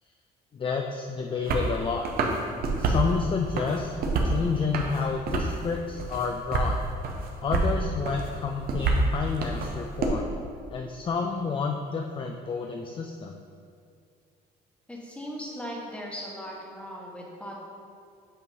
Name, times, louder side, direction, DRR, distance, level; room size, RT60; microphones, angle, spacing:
voice 1, 0.5-2.1 2.8-3.9 4.2-6.8 7.4-10.3 10.7-13.4, left 5 dB, 30° left, 3 dB, 0.4 m, -30 dB
sound 1, 1.4-1.7 2.0-3.1 3.5-4.4 4.7-5.6 6.0-6.7 7.0-7.7 8.0-10.1, right 3 dB, 65° right, 0.9 m, -27 dB
voice 2, 14.9-17.6, equal, 5° left, -3 dB, 1.3 m, -38 dB
8.3 x 2.9 x 5.3 m, 2.3 s
cardioid pair, 110°, 17 cm